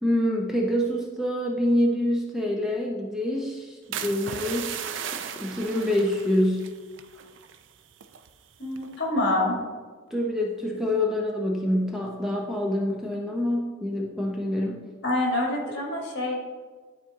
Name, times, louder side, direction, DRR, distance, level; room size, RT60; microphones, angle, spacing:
voice 1, 0.0-6.7 10.1-14.8, left 1 dB, ahead, -1 dB, 0.6 m, -26 dB
sound 1, 3.9-8.3 8.8-9.1, right 8 dB, 70° right, 0.5 m, -36 dB
voice 2, 8.6-9.6 15.0-16.4, left 1 dB, 60° left, -2 dB, 2.0 m, -26 dB
11.0 x 4.3 x 3.6 m, 1.4 s
head